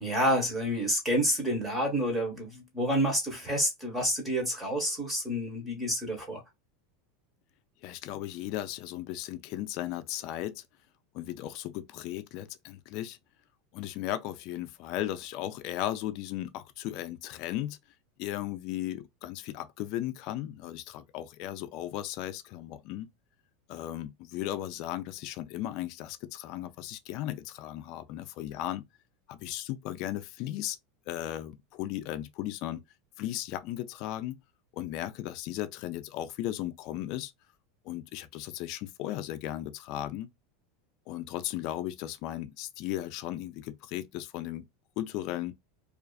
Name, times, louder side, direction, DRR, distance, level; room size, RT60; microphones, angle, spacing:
voice 1, 0.0-6.4, equal, 10° right, 0.9 m, -29 dB
voice 2, 7.8-10.6 11.1-13.2 13.7-17.8 18.2-23.1 23.7-28.8 29.3-30.8 31.1-32.8 33.2-34.3 34.7-37.3 37.8-40.3 41.1-44.7 45.0-45.5, left 13 dB, 45° left, 0.3 m, -36 dB
2.4 x 2.4 x 2.3 m
supercardioid pair, 155°, 0 cm